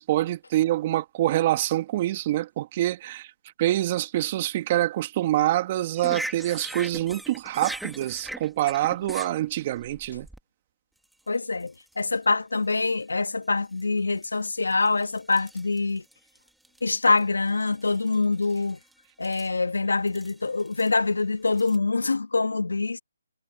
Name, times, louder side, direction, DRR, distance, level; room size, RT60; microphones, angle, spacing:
voice 1, 0.0-3.3 3.6-10.3, right 14 dB, 30° right, 2.2 m, -26 dB
sound 1, 6.0-10.4 11.1-11.3 11.6-12.0 12.7-12.9 13.8-13.9 14.2-17.2 17.5-18.9 19.2-19.5 20.1-20.9 21.5-21.8, right 1 dB, ahead, 2.2 m, -40 dB
voice 2, 11.3-16.0 16.8-18.8 19.2-23.0, left 3 dB, 90° left, 1.6 m, -25 dB
hypercardioid pair, 160°, 0 cm